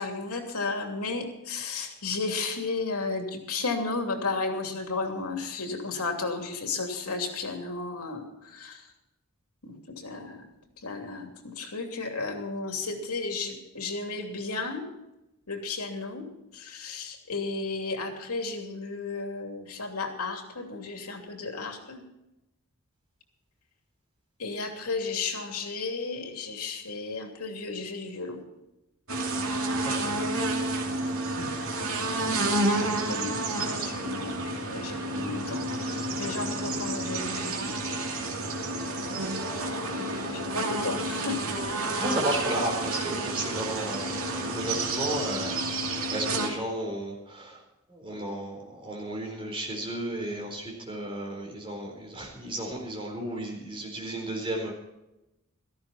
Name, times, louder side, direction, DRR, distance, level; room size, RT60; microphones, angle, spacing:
voice 1, 0.0-8.9 9.6-10.5 10.8-14.8 15.5-16.3 16.5-22.0 24.4-28.4 31.3-31.5 32.3-32.8 33.1-37.8 39.9-41.4, left 3 dB, 90° left, 3 dB, 2.9 m, -34 dB
sound 1, 29.1-46.5, right 2 dB, 70° right, 2.5 m, -30 dB
voice 2, 29.8-30.2 40.1-40.2 42.0-45.8 46.1-54.7, right 1 dB, 25° right, 0 dB, 4.2 m, -33 dB
17.5 x 14.0 x 4.3 m, 0.92 s
head